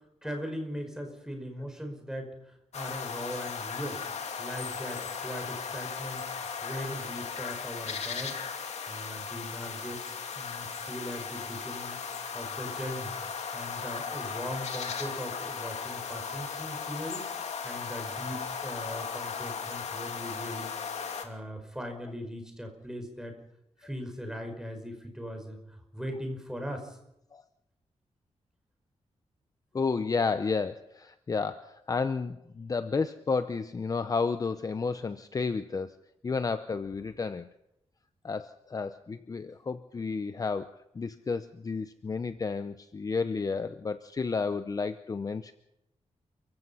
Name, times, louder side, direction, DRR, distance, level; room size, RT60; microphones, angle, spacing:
voice 1, 0.2-2.3 2.7-4.0 4.4-6.2 6.6-8.4 8.9-12.0 12.3-13.1 13.5-17.2 17.6-20.7 21.2-23.3 23.8-25.6 25.9-27.0, equal, 5° right, 4 dB, 5.2 m, -39 dB
sound 1, 2.7-21.3, left 6 dB, 80° left, 2.6 m, -37 dB
voice 2, 29.7-36.0 36.2-37.5 38.2-45.5, left 4 dB, 30° left, 11 dB, 0.7 m, -31 dB
29.5 x 16.0 x 5.6 m, 0.83 s
wide cardioid pair, 155°, 11 cm